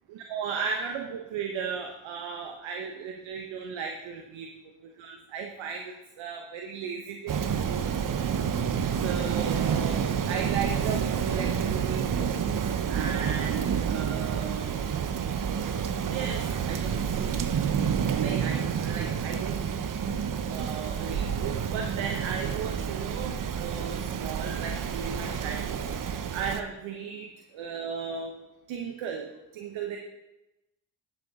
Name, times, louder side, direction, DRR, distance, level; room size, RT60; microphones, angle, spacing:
voice 1, 0.1-4.5 5.0-7.9 9.0-12.4 12.9-14.7 16.1-17.4 17.6-19.7 20.5-25.8 26.3-28.3 28.7-29.3 29.5-30.0, right 6 dB, 75° right, 3 dB, 1.2 m, -36 dB
Rain, 7.3-26.6, right 7 dB, 45° right, 0.8 m, -29 dB
11.5 x 8.1 x 3.7 m, 0.96 s
supercardioid pair, 55°, 46 cm